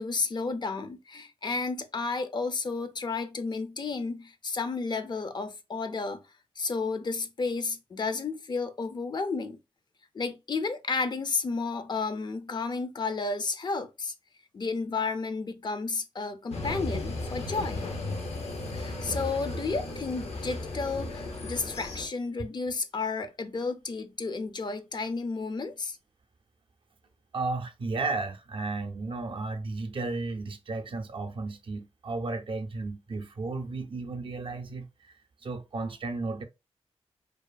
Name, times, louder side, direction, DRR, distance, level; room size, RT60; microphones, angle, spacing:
voice 1, 0.0-6.2 6.6-9.6 10.1-14.1 14.5-17.8 18.7-26.0, left 4 dB, 45° left, 0.4 m, -32 dB
sound 1, 16.5-22.1, left 2 dB, 85° left, 0.6 m, -35 dB
voice 2, 27.3-36.4, right 3 dB, 55° right, 0.4 m, -34 dB
2.6 x 2.3 x 2.3 m
wide cardioid pair, 75°, 11 cm